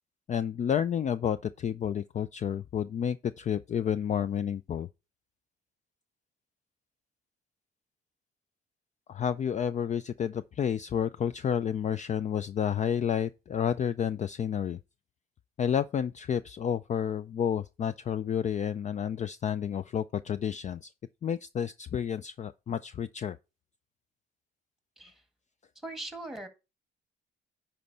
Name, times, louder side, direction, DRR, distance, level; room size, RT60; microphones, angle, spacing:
voice 1, 0.3-4.9 9.1-14.8 15.6-20.9 21.2-23.4, left 8 dB, 35° left, 0.4 m, -30 dB
voice 2, 25.8-26.5, right 2 dB, ahead, 1.7 m, -40 dB
10.0 x 4.5 x 4.1 m
cardioid pair, 90°, 20 cm